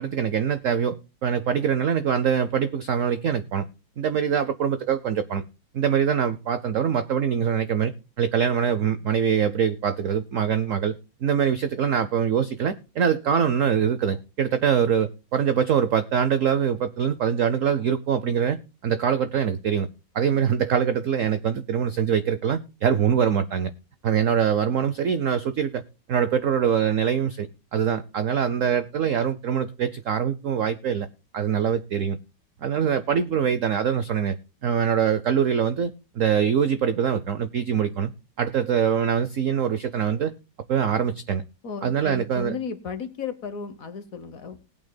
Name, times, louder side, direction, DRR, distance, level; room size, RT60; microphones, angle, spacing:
voice 1, 0.0-3.7 4.0-5.4 5.7-7.9 8.2-10.9 11.2-18.6 18.8-19.9 20.1-23.7 24.0-25.8 26.1-31.1 31.3-32.2 32.6-34.4 34.6-38.1 38.4-40.3 40.7-41.4 41.8-42.5, right 8 dB, 75° right, 0.7 m, -23 dB
voice 2, 41.6-44.6, left 5 dB, 55° left, 1.2 m, -34 dB
19.5 x 8.7 x 2.2 m
omnidirectional pair, 2.1 m